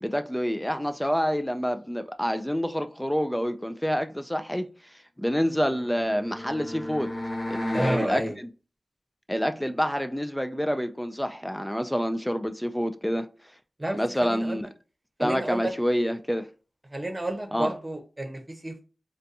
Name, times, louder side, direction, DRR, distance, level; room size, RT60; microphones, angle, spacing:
voice 1, 0.0-4.7 5.2-7.1 7.5-8.5 9.3-13.3 14.0-14.7 15.2-16.5 17.5-17.7, equal, 5° left, 0.3 m, -27 dB
sound 1, 5.6-8.2, left 1 dB, 45° left, 0.8 m, -34 dB
voice 2, 7.7-8.4 13.8-14.6 15.2-15.7 16.9-18.8, right 1 dB, 20° right, 0.9 m, -31 dB
3.9 x 2.2 x 2.7 m
wide cardioid pair, 80°, 0 cm